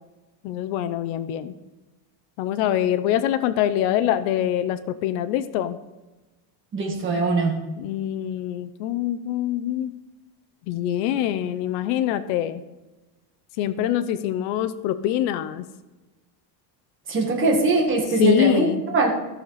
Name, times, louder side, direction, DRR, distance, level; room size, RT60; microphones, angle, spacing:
voice 1, 0.4-1.5 2.4-5.8 7.8-9.9 10.7-12.6 13.6-15.7 18.2-18.8, left 11 dB, 70° left, 12 dB, 0.8 m, -24 dB
voice 2, 6.7-7.6 17.1-19.1, right 3 dB, 25° right, 0 dB, 1.7 m, -21 dB
14.5 x 6.7 x 4.1 m, 1.1 s
cardioid pair, 175°, 49 cm